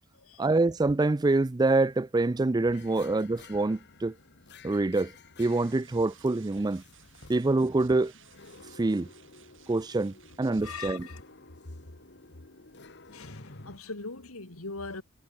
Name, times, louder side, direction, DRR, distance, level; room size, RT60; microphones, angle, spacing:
voice 1, 0.4-4.1 4.6-5.1 5.4-6.8 7.3-8.1 8.8-9.1 9.7-11.1, right 2 dB, 20° right, 0.4 m, -26 dB
sound 1, 2.7-13.8, left 3 dB, 50° left, 2.2 m, -52 dB
sound 2, 5.4-10.8, right 11 dB, 55° right, 3.8 m, -58 dB
voice 2, 10.6-11.2 13.1-15.0, left 3 dB, 70° left, 2.4 m, -40 dB
head